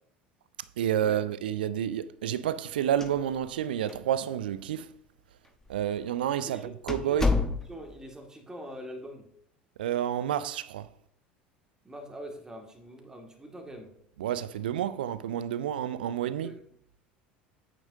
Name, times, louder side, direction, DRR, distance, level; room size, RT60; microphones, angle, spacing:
voice 1, 0.8-4.9 5.7-7.3 9.8-10.9 14.2-16.5, right 10 dB, 65° right, 0.5 m, -29 dB
sound 1, 2.9-3.6 3.9-4.0 4.7-4.8 5.6-5.8 6.2-6.3 6.9-8.0, left 3 dB, 10° left, 1.0 m, -29 dB
voice 2, 7.7-9.3 11.8-13.9 16.4-16.6, equal, 10° right, 2.1 m, -43 dB
10.0 x 9.1 x 2.8 m
figure-of-eight pair, 70°, 5 cm